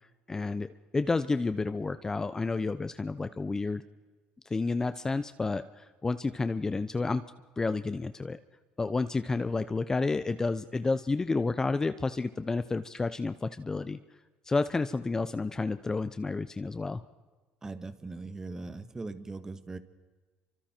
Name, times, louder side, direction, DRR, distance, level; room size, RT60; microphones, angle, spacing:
voice 1, 0.3-0.7 0.9-3.8 4.5-7.2 7.6-8.4 8.8-14.0 14.5-17.0, left 3 dB, 20° left, 11 dB, 0.8 m, -30 dB
voice 2, 17.6-19.8, right 3 dB, 20° right, 10 dB, 1.7 m, -40 dB
30.0 x 25.5 x 4.5 m, 1.3 s
cardioid pair, 120°, 3 cm